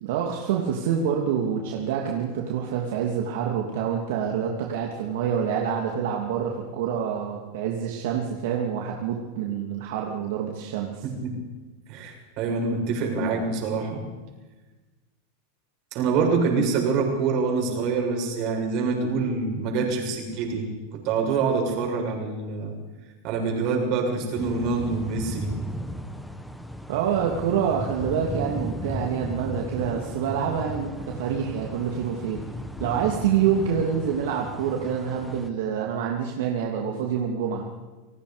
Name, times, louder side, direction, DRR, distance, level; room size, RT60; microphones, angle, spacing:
voice 1, 0.0-11.1 26.9-32.4 32.8-37.7, right 8 dB, 70° right, 0 dB, 2.8 m, -27 dB
voice 2, 11.0-11.4 11.9-14.0 15.9-22.7 23.2-25.5, right 4 dB, 50° right, 1 dB, 7.0 m, -26 dB
sound 1, 24.3-35.5, equal, 5° left, 1.6 m, -35 dB
29.5 x 18.0 x 5.3 m, 1.2 s
supercardioid pair, 130°, 0 cm